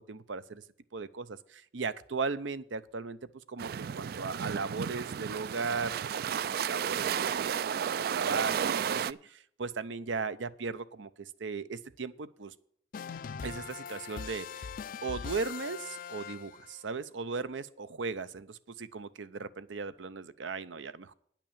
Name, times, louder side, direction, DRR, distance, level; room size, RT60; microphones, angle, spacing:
voice 1, 0.1-0.6 0.9-3.2 3.5-12.5 13.4-14.7 15.0-21.1, right 4 dB, 80° right, 14 dB, 0.7 m, -37 dB
sound 1, 3.6-9.1, right 8 dB, 55° right, 0.3 m, -32 dB
sound 2, 12.9-16.8, left 6 dB, 50° left, 0.3 m, -41 dB
9.9 x 6.0 x 8.6 m, 0.65 s
head